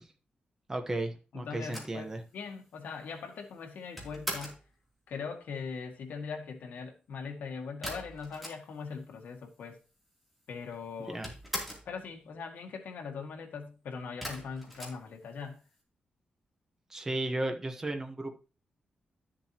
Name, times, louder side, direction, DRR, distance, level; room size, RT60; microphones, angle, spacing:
voice 1, 0.7-2.2 11.1-11.3 16.9-18.4, right 2 dB, 15° right, 1.1 m, -34 dB
voice 2, 1.3-4.6 5.1-9.8 10.5-11.2 11.9-15.6, left 5 dB, 80° left, 1.9 m, -41 dB
sound 1, 1.7-4.7 7.8-9.0 9.3-9.4 9.5-10.3 10.6-12.0 14.2-15.7, equal, ahead, 3.0 m, -41 dB
12.0 x 7.4 x 2.9 m
wide cardioid pair, 160°, 3 cm